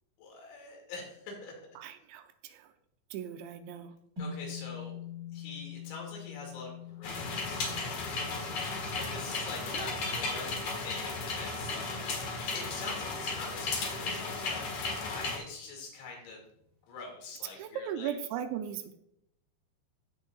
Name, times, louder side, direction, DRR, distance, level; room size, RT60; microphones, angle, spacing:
voice 1, 0.2-1.6 4.2-5.0 5.3-8.6 9.0-16.4 16.9-18.1, left 3 dB, 90° left, 0 dB, 4.7 m, -45 dB
voice 2, 1.8-2.7 3.1-3.9 9.7-9.9 17.6-18.8, right 9 dB, 85° right, 8 dB, 2.9 m, -38 dB
sound 1, 4.2-12.6, left 7 dB, 50° right, 1.0 m, -45 dB
sound 2, 7.0-15.4, left 3 dB, 55° left, 1.9 m, -35 dB
15.0 x 6.3 x 2.4 m, 0.75 s
omnidirectional pair, 5.2 m